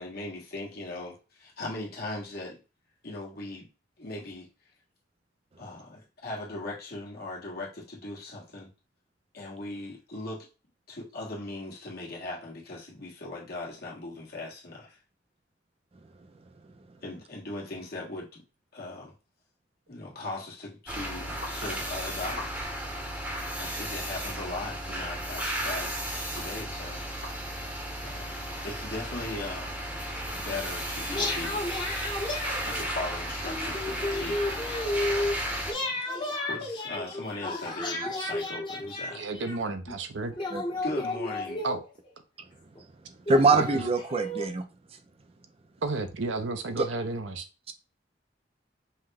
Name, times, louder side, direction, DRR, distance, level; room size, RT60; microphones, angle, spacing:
voice 1, 0.0-2.6 3.0-3.7 4.0-4.5 5.6-8.7 9.3-10.5 10.9-15.0 17.0-18.4 18.7-19.1 19.9-22.7 23.6-27.0 28.0-28.3 28.6-29.8 30.3-31.7 32.6-34.4 36.5-39.2 40.8-41.6, left 2 dB, 60° left, 1.5 m, -39 dB
sound 1, 20.9-35.7, right 1 dB, 10° right, 0.8 m, -34 dB
sound 2, 21.4-21.6 22.3-22.8 23.4-23.5 24.4-24.5 25.4-25.5 26.4-26.5 27.2-27.4, left 2 dB, 80° left, 1.3 m, -42 dB
sound 3, 31.1-33.1 33.4-35.4 35.7-39.6 40.4-42.1 42.8-42.9 43.3-44.5, left 2 dB, 25° left, 1.0 m, -32 dB
voice 2, 39.1-40.3 41.6-41.8 43.5-43.7 45.8-47.5, right 3 dB, 80° right, 0.6 m, -32 dB
voice 3, 43.3-44.6 46.8-46.9 47.7-47.8, right 3 dB, 35° right, 0.5 m, -23 dB
5.5 x 2.2 x 3.4 m
head